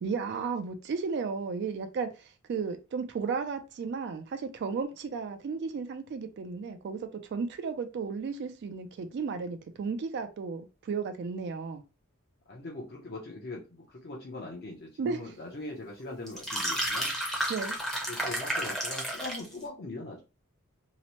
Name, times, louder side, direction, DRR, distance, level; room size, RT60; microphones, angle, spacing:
voice 1, 0.0-7.0 7.3-11.8 15.0-15.2 17.5-17.8, right 5 dB, 50° right, 0.3 m, -34 dB
voice 2, 12.5-17.1 18.1-20.2, left 2 dB, 45° left, 0.6 m, -41 dB
sound 1, 16.3-19.5, right 1 dB, ahead, 0.6 m, -32 dB
2.8 x 2.0 x 2.9 m
head